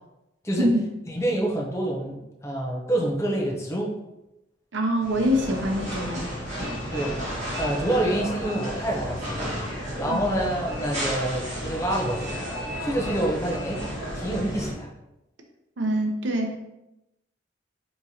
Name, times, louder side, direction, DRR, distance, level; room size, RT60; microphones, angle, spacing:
voice 1, 1.1-3.9 6.9-7.2 7.6-9.6 10.0-12.4 12.8-13.8 14.1-14.9, right 1 dB, 15° left, -3 dB, 0.6 m, -27 dB
voice 2, 4.7-6.3 10.1-10.2 15.8-16.6, equal, 80° right, 3 dB, 0.6 m, -25 dB
sound 1, 5.0-14.7, equal, 40° right, 1.4 m, -32 dB
3.7 x 3.0 x 2.7 m, 0.92 s
head